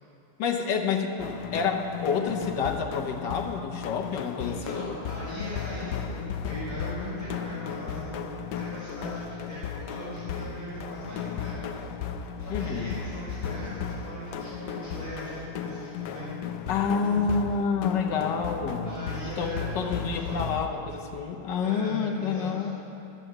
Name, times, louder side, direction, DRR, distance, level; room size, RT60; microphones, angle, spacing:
voice 1, 0.4-4.9 12.5-12.9 16.7-18.9 19.4-22.8, left 5 dB, 65° left, 3 dB, 1.3 m, -28 dB
sound 1, 1.2-20.7, left 7 dB, 85° left, 0.9 m, -35 dB
voice 2, 4.4-17.1 17.5-17.6 18.8-20.5 21.6-22.7, equal, 15° right, -12 dB, 3.5 m, -39 dB
11.5 x 7.7 x 7.8 m, 2.9 s
omnidirectional pair, 2.4 m